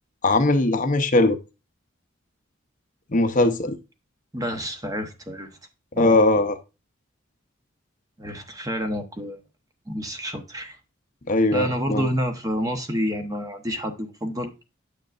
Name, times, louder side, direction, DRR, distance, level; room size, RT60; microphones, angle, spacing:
voice 1, 0.2-1.4 3.1-3.8 6.0-6.6 11.3-12.1, left 2 dB, 40° left, 0.8 m, -20 dB
voice 2, 4.3-5.5 5.9-6.2 8.2-9.4 9.9-10.8 11.5-14.5, equal, 20° right, 1.0 m, -29 dB
9.3 x 6.4 x 2.5 m
head